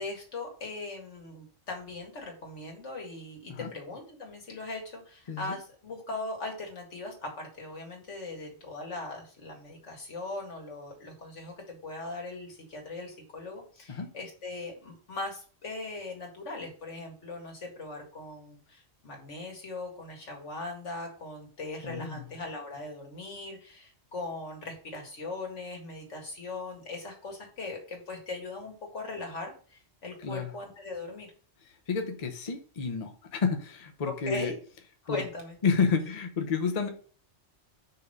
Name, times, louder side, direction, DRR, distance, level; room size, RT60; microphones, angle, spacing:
voice 1, 0.0-31.3 34.1-34.6 35.0-35.5, left 2 dB, 80° left, 1 dB, 2.2 m, -39 dB
voice 2, 21.8-22.3 30.2-30.5 31.6-34.5 35.1-35.2 35.6-36.9, left 5 dB, 40° left, 5 dB, 0.8 m, -30 dB
5.7 x 3.6 x 5.4 m, 0.41 s
omnidirectional pair, 1.2 m